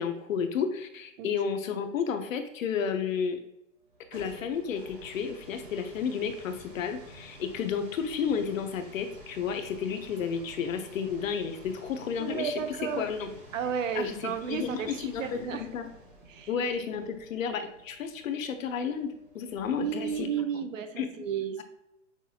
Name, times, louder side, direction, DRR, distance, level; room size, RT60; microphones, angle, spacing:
voice 1, 0.0-3.4 4.1-12.6 13.0-13.3 13.9-15.9 16.5-20.3 20.5-20.6 21.0-21.1, left 6 dB, 90° left, 7 dB, 0.7 m, -32 dB
sound 1, 3.8-20.5, right 1 dB, 40° right, 1.4 m, -51 dB
voice 2, 12.2-13.1 13.5-15.7 16.3-16.5 19.8-21.6, right 7 dB, 80° right, 9 dB, 0.7 m, -33 dB
5.9 x 2.4 x 2.7 m, 0.83 s
hypercardioid pair, 170°, 39 cm